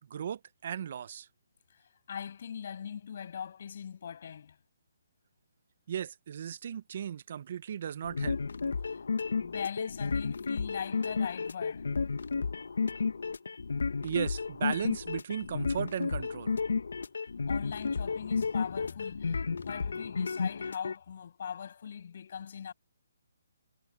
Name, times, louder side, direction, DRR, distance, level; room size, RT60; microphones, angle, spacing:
voice 1, 0.1-1.3 5.9-8.4 14.0-16.6, right 9 dB, 45° right, 0.9 m, -36 dB
voice 2, 1.7-4.6 8.9-9.0 9.4-11.9 17.5-22.7, left 7 dB, 50° left, 7.2 m, -41 dB
sound 1, 8.0-20.9, left 5 dB, 75° left, 1.8 m, -32 dB
hypercardioid pair, 155°, 0 cm